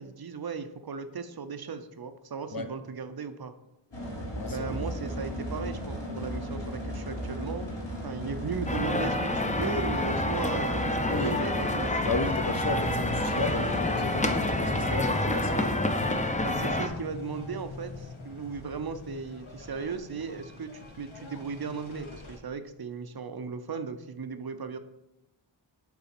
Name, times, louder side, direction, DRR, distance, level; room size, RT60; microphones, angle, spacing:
voice 1, 0.0-3.5 4.5-7.7 8.0-11.9 16.4-24.8, right 5 dB, 50° right, 9 dB, 0.6 m, -36 dB
sound 1, 3.9-15.8, equal, 65° left, 1.8 m, -36 dB
voice 2, 4.4-4.8 11.1-11.4 12.0-15.7, left 3 dB, 45° left, 6 dB, 0.8 m, -34 dB
sound 2, 8.7-16.9, left 1 dB, 15° left, 0.6 m, -28 dB
sound 3, 12.5-22.4, left 3 dB, 85° left, 1.0 m, -45 dB
7.0 x 4.0 x 4.2 m, 0.88 s
wide cardioid pair, 50°, 47 cm